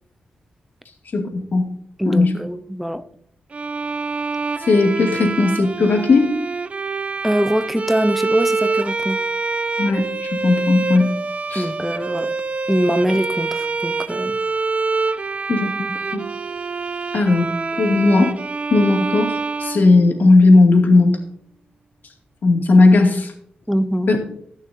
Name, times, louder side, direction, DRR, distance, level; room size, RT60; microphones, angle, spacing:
voice 1, 1.1-1.7 2.1-2.3 4.7-6.3 9.8-10.0 10.4-11.1 11.5-11.7 15.5-16.2 17.1-17.5 17.8-18.4 18.7-21.2 22.4-23.3 24.1-24.2, left 3 dB, 65° left, 2.3 m, -16 dB
voice 2, 2.0-3.0 7.2-9.2 11.5-12.3 12.7-14.4 23.7-24.1, equal, ahead, 0.7 m, -22 dB
Bowed string instrument, 3.5-20.5, right 3 dB, 40° right, 0.5 m, -26 dB
19.0 x 6.5 x 2.7 m
cardioid pair, 65°, 3 cm